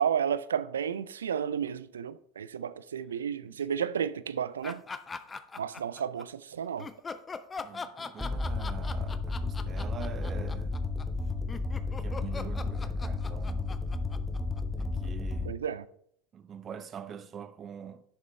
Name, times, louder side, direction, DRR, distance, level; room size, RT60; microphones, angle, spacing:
voice 1, 0.0-4.8 5.6-6.9 15.4-15.8, right 8 dB, 80° right, 0.4 m, -32 dB
sound 1, 4.6-6.2 6.8-15.1, left 4 dB, 25° left, 0.6 m, -41 dB
voice 2, 7.6-10.7 11.9-13.8 14.8-15.6 16.3-18.0, right 8 dB, 35° right, 0.7 m, -44 dB
sound 2, 8.2-15.5, left 3 dB, 5° left, 1.0 m, -33 dB
10.5 x 6.6 x 3.2 m
figure-of-eight pair, 75°, 0 cm